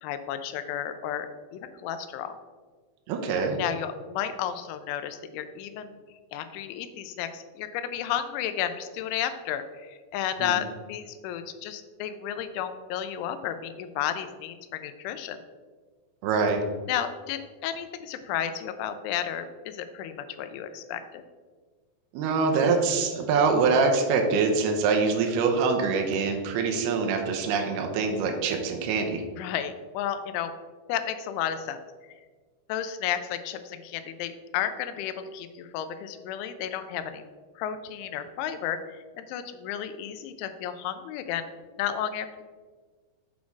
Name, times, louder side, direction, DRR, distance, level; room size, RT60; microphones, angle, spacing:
voice 1, 0.0-2.4 3.6-6.0 6.3-15.4 16.9-21.2 29.4-30.5 30.9-31.8 32.7-37.2 37.6-41.5 41.8-42.4, left 10 dB, 90° left, 10 dB, 3.0 m, -32 dB
voice 2, 3.1-3.6 10.4-10.6 16.2-16.6 22.1-29.2, right 4 dB, 80° right, 3 dB, 2.4 m, -24 dB
8.3 x 4.2 x 4.6 m, 1.5 s
omnidirectional pair, 5.3 m